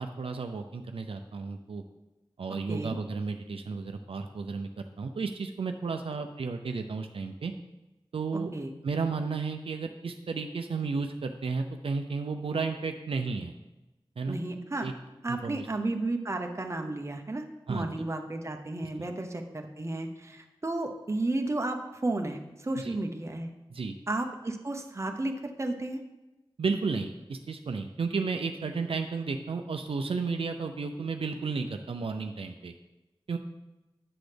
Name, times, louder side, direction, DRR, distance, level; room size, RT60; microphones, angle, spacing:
voice 1, 0.0-1.8 2.4-7.5 8.1-8.5 8.8-13.5 14.2-14.4 14.8-14.9 15.3-15.7 17.7-17.9 19.0-19.1 22.8-23.0 23.7-23.9 26.6-32.7 33.3-33.4, right 4 dB, 80° right, 6 dB, 0.5 m, -33 dB
voice 2, 2.5-3.0 8.3-8.7 14.3-14.9 15.2-23.5 24.1-26.0, right 2 dB, 30° right, 4 dB, 0.7 m, -33 dB
8.6 x 6.1 x 3.4 m, 1.0 s
wide cardioid pair, 85°, 9 cm